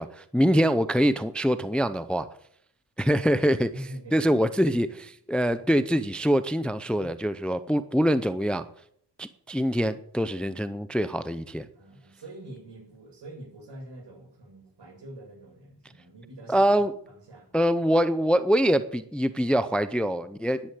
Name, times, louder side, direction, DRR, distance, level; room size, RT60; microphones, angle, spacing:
voice 1, 0.0-2.3 3.0-3.7 4.1-8.6 9.2-11.7 16.5-16.9 17.5-20.6, equal, ahead, 13 dB, 0.5 m, -24 dB
voice 2, 3.4-4.6 4.9-5.0 5.6-5.7 7.0-7.2 11.7-17.5, right 1 dB, 75° right, 1 dB, 7.5 m, -45 dB
11.0 x 10.0 x 9.1 m, 0.67 s
wide cardioid pair, 165°, 43 cm